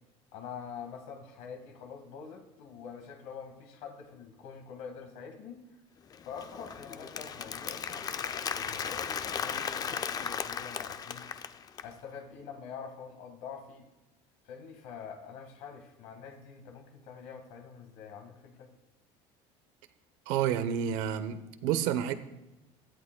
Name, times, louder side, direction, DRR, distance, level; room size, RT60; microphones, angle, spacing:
voice 1, 0.3-5.6 6.2-11.4 11.8-13.9 14.4-18.7, left 6 dB, 75° left, 1.6 m, -45 dB
Applause, 6.1-11.9, left 7 dB, 30° left, 0.5 m, -36 dB
voice 2, 20.3-22.1, right 9 dB, 80° right, 0.8 m, -29 dB
16.5 x 11.5 x 2.2 m
cardioid pair, 115°, 12 cm